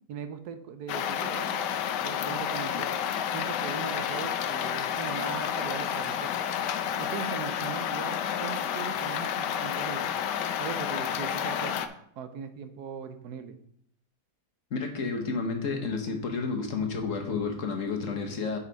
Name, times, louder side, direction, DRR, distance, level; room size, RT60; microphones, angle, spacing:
voice 1, 0.1-1.6 2.0-3.0 3.3-6.4 7.0-10.1 10.6-11.9 12.2-13.6, right 7 dB, 75° right, 9 dB, 1.2 m, -39 dB
sound 1, 0.9-11.9, left 9 dB, 85° left, 1.2 m, -30 dB
voice 2, 14.7-18.6, left 4 dB, 55° left, 3 dB, 1.3 m, -31 dB
8.1 x 5.6 x 4.0 m, 0.67 s
omnidirectional pair, 1.8 m